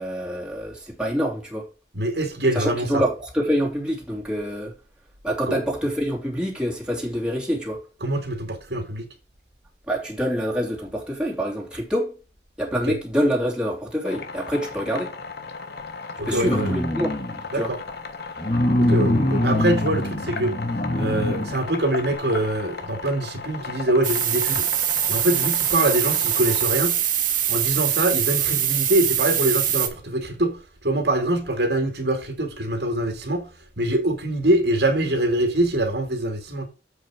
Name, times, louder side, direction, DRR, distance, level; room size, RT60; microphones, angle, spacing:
voice 1, 0.0-1.7 2.5-4.7 5.2-7.8 9.9-12.1 12.6-15.1 16.3-17.2 17.5-17.7, equal, 5° right, 3.2 m, -26 dB
voice 2, 1.9-3.0 5.5-5.6 8.0-9.1 12.9-13.0 16.2-16.7 17.5-17.8 18.8-20.5 20.9-24.7 25.1-27.0 27.5-33.5 33.8-36.7, right 1 dB, 65° right, 2.5 m, -24 dB
sound 1, 14.0-26.7, left 4 dB, 60° left, 1.4 m, -36 dB
sound 2, 16.2-17.5 18.4-21.6 22.1-22.2, left 1 dB, 35° left, 1.7 m, -23 dB
static noise, 24.0-29.9, right 10 dB, 50° right, 1.9 m, -23 dB
7.9 x 6.0 x 4.9 m
head